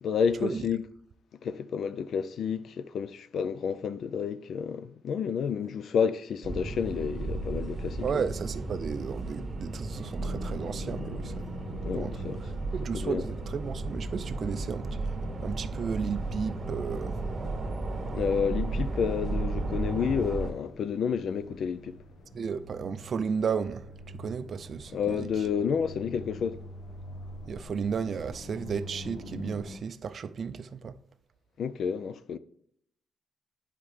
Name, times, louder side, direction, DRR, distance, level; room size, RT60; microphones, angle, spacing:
voice 1, 0.0-0.8 1.4-8.1 11.8-12.4 12.9-13.2 18.1-22.0 24.9-26.6 31.6-32.4, left 7 dB, 65° left, 0.4 m, -30 dB
sound 1, 6.4-20.5, right 3 dB, 30° right, 1.7 m, -34 dB
voice 2, 8.0-11.6 11.9-14.9 15.4-17.2 22.3-25.3 27.5-30.9, right 6 dB, 50° right, 0.4 m, -34 dB
sound 2, 10.2-29.8, left 1 dB, 90° left, 1.2 m, -45 dB
9.0 x 5.7 x 3.2 m
cardioid pair, 130°, 0 cm